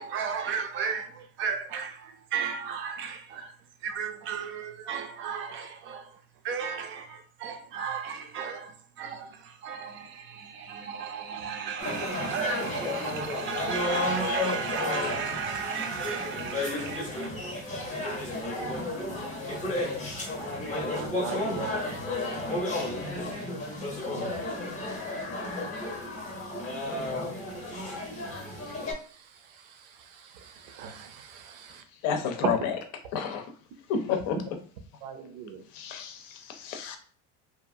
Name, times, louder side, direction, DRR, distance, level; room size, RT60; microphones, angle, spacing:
voice 1, 0.0-3.5 3.8-6.0 6.4-8.7 9.0-9.3 9.6-17.3, right 6 dB, 35° right, 0.4 m, -34 dB
sound 1, 11.8-28.9, left 2 dB, 20° left, 0.6 m, -32 dB
voice 2, 20.9-21.7 24.2-24.4 30.7-31.4 32.4-32.5 35.0-35.6, right 7 dB, 80° right, 0.6 m, -35 dB
voice 3, 32.0-32.8 33.1-33.4 33.9-34.4 35.7-37.0, left 6 dB, 65° left, 0.6 m, -30 dB
2.8 x 2.4 x 2.5 m
cardioid pair, 145°, 35 cm